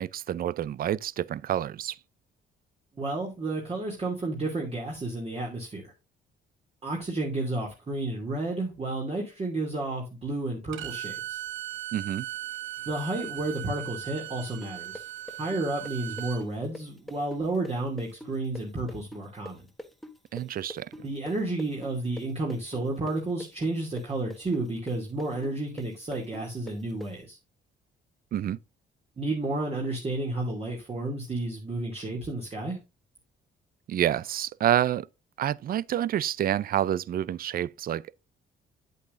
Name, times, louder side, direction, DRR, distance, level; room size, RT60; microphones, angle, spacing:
voice 1, 0.0-2.0 11.9-12.3 20.3-20.9 28.3-28.6 33.9-35.1 35.4-38.1, right 11 dB, 50° right, 0.4 m, -28 dB
voice 2, 3.0-5.9 6.8-11.4 12.9-15.0 15.4-19.6 21.0-27.4 29.2-32.8, right 2 dB, 30° right, 2.5 m, -31 dB
Bowed string instrument, 10.7-16.4, right 13 dB, 75° right, 0.8 m, -38 dB
sound 1, 14.6-22.2 22.5-27.1, left 1 dB, ahead, 1.3 m, -43 dB
8.4 x 8.2 x 2.5 m
cardioid pair, 90°, 20 cm